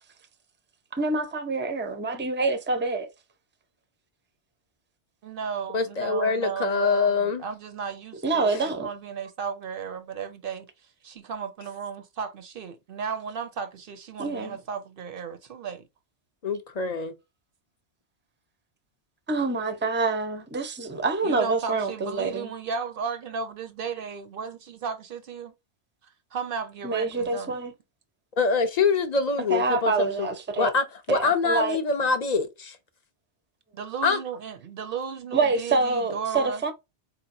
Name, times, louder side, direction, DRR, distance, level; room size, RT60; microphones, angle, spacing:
voice 1, 1.0-3.1 8.2-8.9 14.2-14.6 19.3-22.5 26.8-27.7 29.5-30.7 31.1-31.8 35.3-36.7, right 3 dB, 15° right, 0.4 m, -26 dB
voice 2, 5.2-15.8 21.2-25.5 26.3-27.6 33.7-36.6, right 6 dB, 60° right, 0.6 m, -35 dB
voice 3, 5.7-7.4 8.5-8.6 16.4-17.1 28.4-30.3 30.6-32.8 34.0-34.2, left 4 dB, 55° left, 0.4 m, -24 dB
4.4 x 2.8 x 2.6 m
omnidirectional pair, 1.2 m